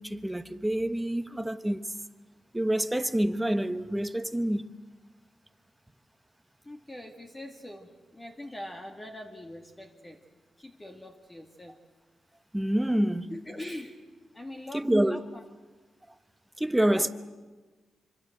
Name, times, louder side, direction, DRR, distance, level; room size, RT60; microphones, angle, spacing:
voice 1, 0.0-1.9 2.5-4.7 12.5-13.3 14.7-15.2 16.6-17.1, right 1 dB, 5° right, 1.1 m, -27 dB
voice 2, 6.6-10.2 10.6-11.8 13.3-14.0 14.3-15.4 16.9-17.1, left 1 dB, 20° left, 2.1 m, -42 dB
26.0 x 25.5 x 7.9 m
cardioid pair, 115°, 0 cm